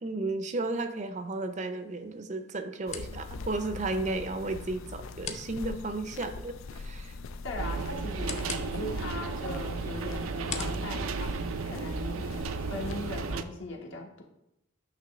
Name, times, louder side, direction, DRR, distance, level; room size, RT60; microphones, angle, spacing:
voice 1, 0.0-7.2, right 2 dB, 35° right, 8 dB, 0.5 m, -33 dB
sound 1, 1.1-12.1, left 5 dB, 35° left, 0.7 m, -46 dB
sound 2, 2.9-13.3, left 3 dB, 85° left, 0.4 m, -43 dB
voice 2, 7.4-12.2 12.7-14.2, left 2 dB, 65° left, -1 dB, 1.5 m, -39 dB
sound 3, 7.6-13.4, right 4 dB, 90° right, 0.5 m, -34 dB
9.1 x 3.1 x 6.1 m, 0.84 s
head